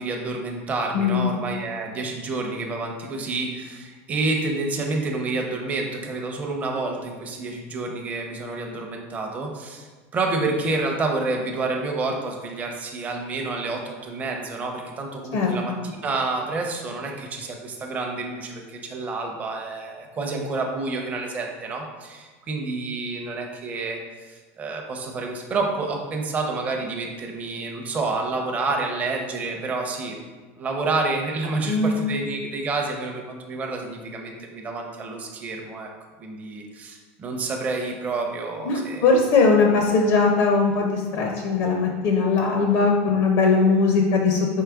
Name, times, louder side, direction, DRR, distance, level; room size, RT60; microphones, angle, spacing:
voice 1, 0.0-9.9 10.1-30.2 30.6-35.9 36.2-39.1, right 3 dB, 20° right, 1 dB, 0.6 m, -29 dB
voice 2, 0.9-1.3 15.3-15.8 31.7-32.0 38.7-44.5, left 4 dB, 55° left, 1 dB, 0.6 m, -20 dB
4.6 x 3.2 x 3.5 m, 1.3 s
supercardioid pair, 155°, 7 cm